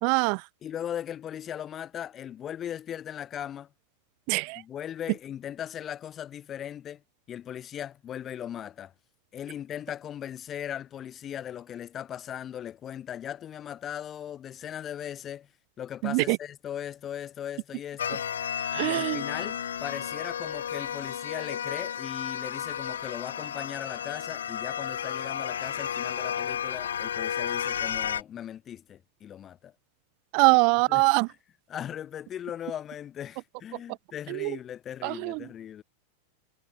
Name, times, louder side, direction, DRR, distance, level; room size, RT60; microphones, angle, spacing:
voice 1, 0.0-0.4 4.3-4.6 16.0-16.4 18.7-19.2 30.3-31.3 34.3-34.5 35.0-35.4, right 37 dB, 45° right, 0.4 m, -23 dB
voice 2, 0.6-3.7 4.5-7.0 7.3-8.9 9.3-15.5 15.8-18.2 18.8-29.7 30.4-30.6 30.9-31.0 31.7-35.8, left 10 dB, 25° left, 7.5 m, -38 dB
sound 1, 18.0-28.2, left 9 dB, 65° left, 1.9 m, -32 dB
figure-of-eight pair, 90°, 0 cm